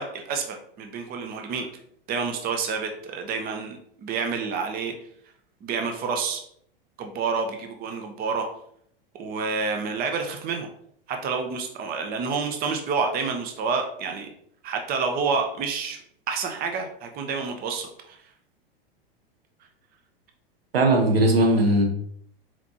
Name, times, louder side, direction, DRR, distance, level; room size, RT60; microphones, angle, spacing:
voice 1, 0.0-1.7 2.1-4.9 5.6-6.4 7.0-8.5 9.2-10.7 11.1-14.3 14.6-16.0 16.3-18.2, right 5 dB, 30° right, 4 dB, 0.7 m, -28 dB
voice 2, 20.7-21.8, right 1 dB, 80° right, 2 dB, 1.1 m, -19 dB
4.3 x 4.1 x 2.9 m, 0.67 s
hypercardioid pair, 95°, 30 cm